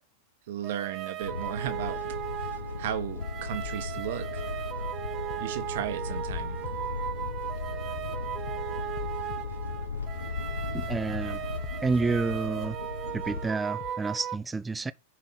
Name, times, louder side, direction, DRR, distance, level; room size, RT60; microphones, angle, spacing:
voice 1, 0.5-2.0 2.4-2.5 2.8-4.4 5.4-6.6, right 10 dB, 65° right, 1.2 m, -35 dB
sound 1, 0.6-14.3, right 11 dB, 35° right, 0.9 m, -37 dB
sound 2, 1.2-13.5, left 4 dB, 90° left, 1.0 m, -36 dB
sound 3, 3.6-4.1 5.3-5.5 5.8-5.9 6.3-6.7 8.0-8.2 8.5-8.6 9.0-9.4 10.6-10.8 11.1-11.2 11.6-12.1 13.3-13.5 13.8-13.9, left 13 dB, 45° left, 0.9 m, -42 dB
voice 2, 10.7-11.4 11.8-12.8 13.1-14.9, right 3 dB, 10° right, 0.4 m, -29 dB
10.0 x 4.5 x 4.1 m
hypercardioid pair, 115°, 0 cm